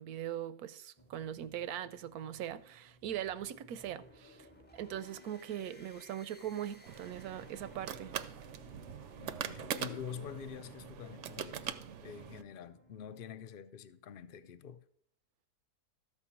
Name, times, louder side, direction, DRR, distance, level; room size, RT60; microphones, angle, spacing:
voice 1, 0.0-4.5 4.7-8.1, right 10 dB, 80° right, 1.1 m, -41 dB
sound 1, 1.0-13.5, left 1 dB, 10° left, 0.6 m, -60 dB
Japan Elevator Buttons, 6.9-12.4, right 9 dB, 65° right, 0.8 m, -42 dB
voice 2, 9.2-14.8, left 8 dB, 60° left, 0.5 m, -47 dB
13.0 x 4.6 x 7.1 m
omnidirectional pair, 1.6 m